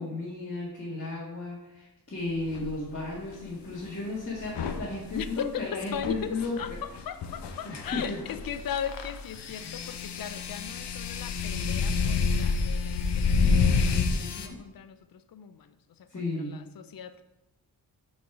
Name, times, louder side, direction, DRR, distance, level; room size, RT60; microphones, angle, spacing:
voice 1, 0.0-6.8 7.6-8.2 14.1-14.6 16.1-16.6, left 3 dB, 30° left, -8 dB, 1.9 m, -34 dB
sound 1, 2.5-2.7 4.4-14.5, left 4 dB, 90° left, 0.9 m, -28 dB
voice 2, 5.1-13.8 14.4-15.7 16.2-17.2, left 8 dB, 60° left, 12 dB, 0.6 m, -38 dB
6.2 x 5.3 x 6.0 m, 0.99 s
wide cardioid pair, 120°, 40 cm